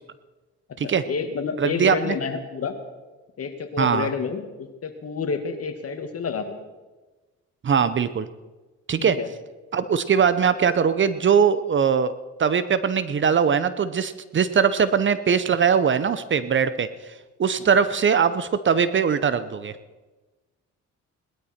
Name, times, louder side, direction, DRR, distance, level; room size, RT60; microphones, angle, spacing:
voice 1, 0.7-2.7 3.4-6.5 9.0-9.3 17.6-17.7, left 5 dB, 50° left, 6 dB, 2.0 m, -29 dB
voice 2, 1.6-2.2 3.8-4.1 7.6-8.3 8.9-9.2 9.7-17.1 17.4-19.7, right 7 dB, 40° right, 14 dB, 0.7 m, -21 dB
19.0 x 12.5 x 4.4 m, 1.2 s
cardioid pair, 90°, 30 cm